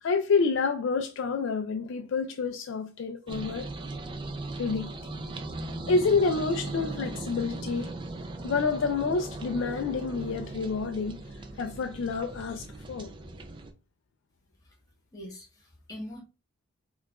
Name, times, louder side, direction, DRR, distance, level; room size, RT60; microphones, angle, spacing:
voice 1, 0.0-3.7 4.6-4.9 5.9-7.9 8.4-11.2 11.6-13.1, left 4 dB, 60° left, 0.3 m, -28 dB
sound 1, 3.3-13.7, right 2 dB, 20° right, 0.3 m, -38 dB
voice 2, 15.1-16.2, equal, 15° left, 1.0 m, -42 dB
4.6 x 2.3 x 2.3 m
head